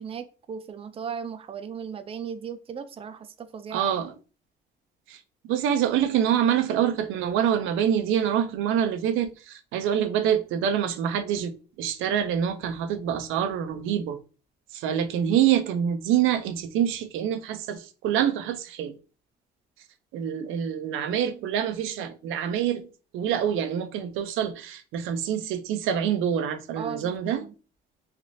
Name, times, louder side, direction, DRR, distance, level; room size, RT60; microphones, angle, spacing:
voice 1, 0.0-3.9 26.8-27.5, right 7 dB, 30° right, 0.4 m, -37 dB
voice 2, 3.7-4.1 5.1-14.2 14.7-18.9 20.1-27.5, right 9 dB, 90° right, 0.4 m, -26 dB
3.3 x 2.4 x 2.5 m
cardioid pair, 90°, 20 cm